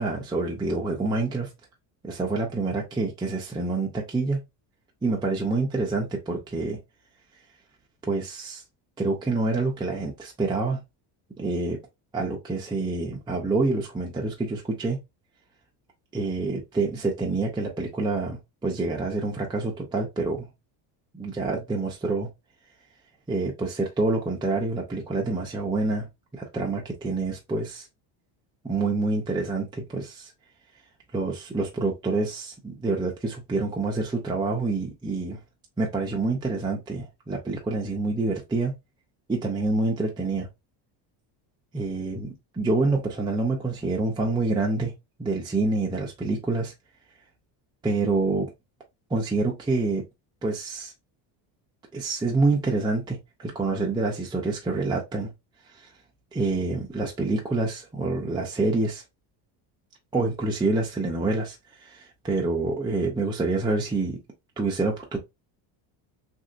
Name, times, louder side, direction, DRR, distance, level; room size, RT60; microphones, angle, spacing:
voice 1, 0.0-1.5 2.0-4.4 5.0-6.8 8.0-8.6 9.0-10.8 11.4-11.8 12.1-15.0 16.1-20.5 21.2-22.3 23.3-26.1 26.3-27.9 28.6-30.3 31.1-35.4 35.8-38.7 39.3-40.5 41.7-44.9 45.2-46.7 47.8-48.5 49.1-50.0 50.4-50.9 51.9-55.3 55.8-55.9 56.3-59.0 60.1-64.2 64.6-65.2, right 3 dB, 10° right, 0.5 m, -27 dB
2.9 x 2.7 x 2.5 m
supercardioid pair, 105°, 48 cm